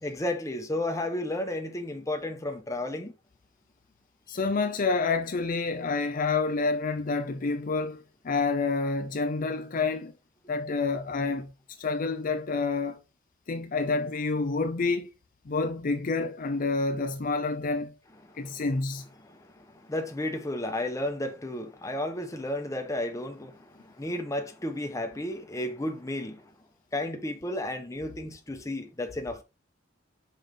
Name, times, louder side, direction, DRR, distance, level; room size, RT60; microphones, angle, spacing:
voice 1, 0.0-3.1 18.3-18.6 19.2-26.5 26.9-29.4, left 1 dB, 15° left, 1.0 m, -33 dB
voice 2, 4.3-10.1 10.5-13.0 13.5-15.1 15.5-17.9 18.4-19.0, left 3 dB, 45° left, 0.5 m, -28 dB
5.5 x 5.2 x 3.8 m
head